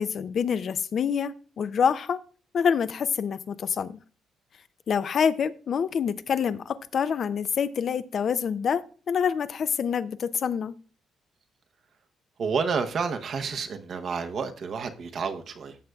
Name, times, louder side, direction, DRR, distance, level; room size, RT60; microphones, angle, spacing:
voice 1, 0.0-2.2 2.5-4.0 4.9-10.7, left 7 dB, 55° left, 0.5 m, -26 dB
voice 2, 12.4-15.8, right 5 dB, 60° right, 0.9 m, -30 dB
14.0 x 6.5 x 2.3 m
cardioid pair, 90°, 0 cm